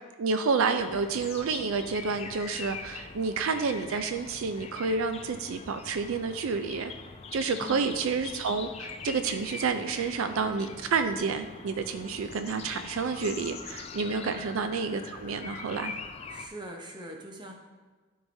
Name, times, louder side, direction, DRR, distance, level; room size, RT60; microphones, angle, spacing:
voice 1, 0.2-6.9 7.3-15.9, right 4 dB, 70° right, 8 dB, 0.4 m, -29 dB
sound 1, 0.8-16.5, left 5 dB, 30° left, 0.3 m, -43 dB
voice 2, 7.5-8.0 14.1-14.5 16.3-17.5, right 1 dB, 20° right, 1 dB, 0.8 m, -43 dB
12.5 x 4.8 x 2.6 m, 1.3 s
head